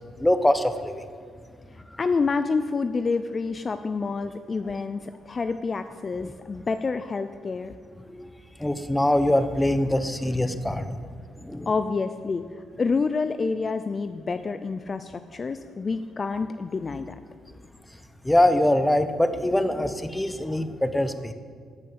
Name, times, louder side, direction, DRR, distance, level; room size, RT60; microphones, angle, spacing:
voice 1, 0.2-1.2 6.2-6.3 8.1-8.3 8.6-11.0 11.4-11.7 18.2-21.3, left 1 dB, 10° left, 10 dB, 0.9 m, -23 dB
voice 2, 1.7-7.7 11.7-17.2, left 4 dB, 35° left, 10 dB, 0.5 m, -28 dB
14.0 x 6.3 x 8.7 m, 2.1 s
cardioid pair, 90°, 0 cm